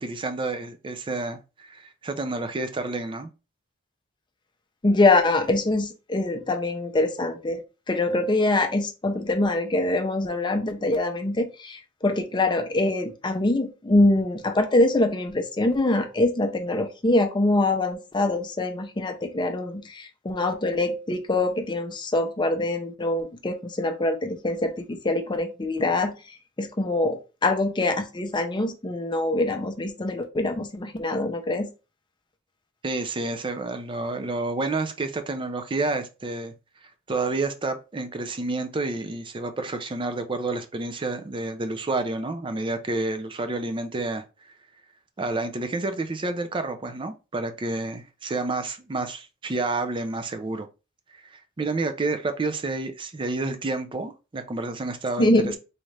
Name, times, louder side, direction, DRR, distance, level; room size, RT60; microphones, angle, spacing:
voice 1, 0.0-3.3 32.8-36.5 37.1-44.2 45.2-50.7 51.3-55.3, right 2 dB, 25° right, 0.4 m, -29 dB
voice 2, 4.8-7.6 7.9-26.1 26.6-31.7 55.2-55.6, left 2 dB, 20° left, 0.5 m, -24 dB
4.1 x 2.4 x 3.2 m
head